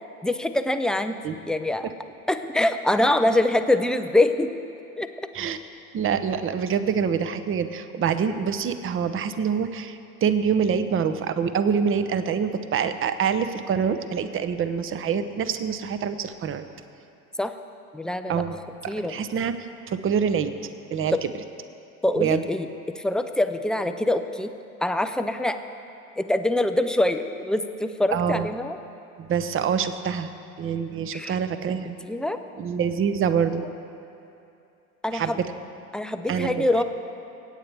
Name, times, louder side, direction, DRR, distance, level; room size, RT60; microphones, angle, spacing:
voice 1, 0.2-1.2 1.5-1.9 2.3-4.5 5.0-5.1 17.4-17.5 17.9-18.4 18.9-19.1 21.1-21.2 22.0-24.5 24.8-25.6 26.2-28.8 31.1-31.4 32.0-32.4 35.0-35.4 35.9-36.8, left 1 dB, ahead, 8 dB, 0.4 m, -24 dB
voice 2, 5.9-16.6 18.3-19.5 19.9-20.5 20.9-21.3 22.2-22.4 28.1-28.5 29.2-30.3 30.6-32.0 32.6-33.7 35.1-35.5 36.3-36.8, right 7 dB, 30° right, 11 dB, 0.8 m, -25 dB
24.5 x 8.8 x 3.5 m, 2.7 s
hypercardioid pair, 80°, 44 cm